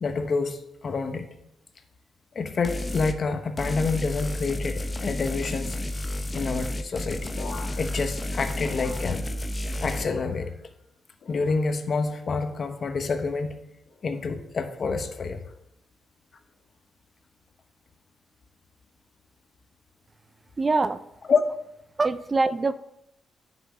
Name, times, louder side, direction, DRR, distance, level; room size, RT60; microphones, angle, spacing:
voice 1, 0.0-1.3 2.3-5.8 6.3-7.3 7.8-9.2 9.8-10.6 11.3-13.5 14.0-15.4 21.3-21.4, left 4 dB, 50° left, 7 dB, 1.1 m, -28 dB
sound 1, 2.6-3.2 3.6-10.0, left 1 dB, 25° left, 0.7 m, -31 dB
sound 2, 7.3-9.6 9.8-10.7 11.2-11.9 12.5-13.0 13.9-14.2 15.2-15.5, left 4 dB, 70° left, 1.8 m, -45 dB
voice 2, 20.6-21.0 22.0-22.7, right 3 dB, 30° right, 13 dB, 0.5 m, -23 dB
9.4 x 6.2 x 4.9 m, 0.83 s
cardioid pair, 80°, 0 cm